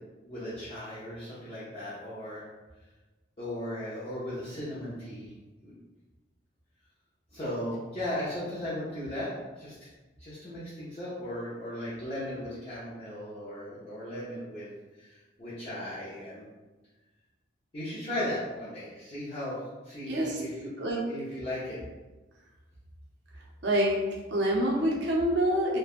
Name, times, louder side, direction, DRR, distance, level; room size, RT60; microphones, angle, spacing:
voice 1, 0.2-2.4 3.4-5.3 5.6-5.7 7.3-9.3 9.6-9.7 10.2-14.7 15.0-16.4 17.7-19.6 19.8-20.7 21.0-21.8, left 1 dB, 30° left, -12 dB, 0.6 m, -36 dB
voice 2, 20.1-20.4 20.8-21.0 23.6-24.0 24.3-25.8, right 1 dB, 60° right, -2 dB, 0.6 m, -26 dB
3.2 x 2.1 x 2.3 m, 1.2 s
head